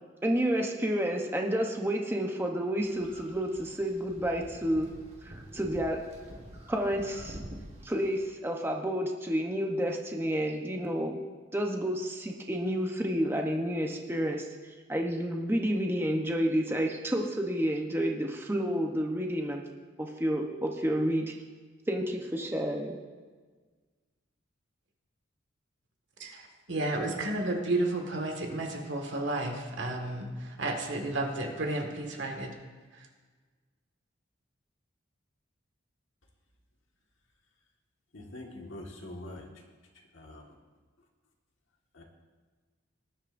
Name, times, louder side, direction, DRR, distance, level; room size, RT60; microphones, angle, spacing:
voice 1, 0.2-4.9 5.2-6.0 6.7-7.4 7.8-11.2 11.5-14.5 14.9-19.6 20.0-21.3 21.9-23.0, equal, 10° right, 1 dB, 0.8 m, -30 dB
sound 1, 2.8-8.3, right 1 dB, 30° right, 1.5 m, -47 dB
voice 2, 26.2-32.5 32.9-33.1, right 2 dB, 65° right, 2 dB, 1.8 m, -32 dB
voice 3, 38.1-39.5 39.9-40.5 41.9-42.0, left 1 dB, 75° left, 0 dB, 1.7 m, -44 dB
19.0 x 10.5 x 2.6 m, 1.4 s
head